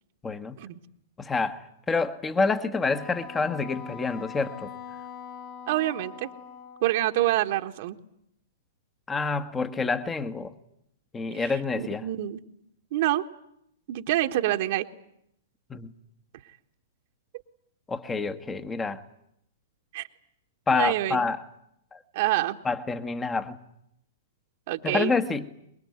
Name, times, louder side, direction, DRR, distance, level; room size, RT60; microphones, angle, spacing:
voice 1, 0.2-0.6 1.2-4.7 9.1-10.5 11.1-12.1 15.7-15.9 17.9-19.0 20.7-21.4 21.9-22.0 22.6-23.6 24.8-25.5, left 4 dB, 15° left, 1.4 m, -27 dB
Wind instrument woodwind instrument, 2.8-7.3, left 7 dB, 40° left, 2.6 m, -42 dB
voice 2, 5.7-6.3 6.8-8.0 11.3-12.4 12.9-13.2 13.9-14.9 19.9-20.1 20.7-21.3 22.1-22.6 24.7-25.2, right 15 dB, 55° right, 1.4 m, -27 dB
24.0 x 21.5 x 9.6 m
hypercardioid pair, 115°, 0 cm